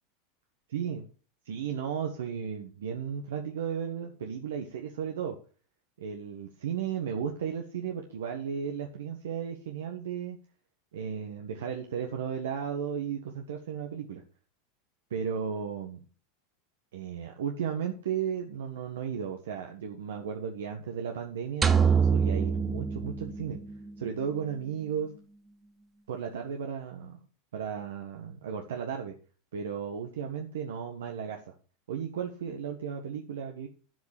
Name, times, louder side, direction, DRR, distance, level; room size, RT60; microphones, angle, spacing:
voice 1, 0.7-1.1 1.4-5.4 6.0-10.4 10.9-14.2 15.1-16.0 16.9-23.6 24.0-25.1 26.1-27.2 27.5-29.1 29.5-31.5 31.9-33.7, right 7 dB, 85° right, 3 dB, 1.3 m, -34 dB
sound 1, 21.6-23.9, right 6 dB, 20° right, 0.8 m, -25 dB
7.8 x 7.7 x 6.6 m, 0.39 s
hypercardioid pair, 110°, 0 cm